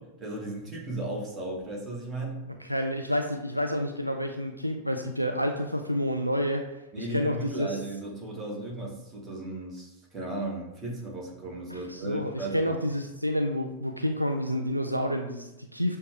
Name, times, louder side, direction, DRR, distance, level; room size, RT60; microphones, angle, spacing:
voice 1, 0.2-2.4 6.9-12.7, right 2 dB, 20° right, -3 dB, 1.2 m, -35 dB
voice 2, 2.5-6.7 7.0-7.8 11.7-16.0, equal, 90° right, 4 dB, 0.3 m, -29 dB
6.6 x 2.2 x 3.1 m, 0.90 s
figure-of-eight pair, 90°, 0 cm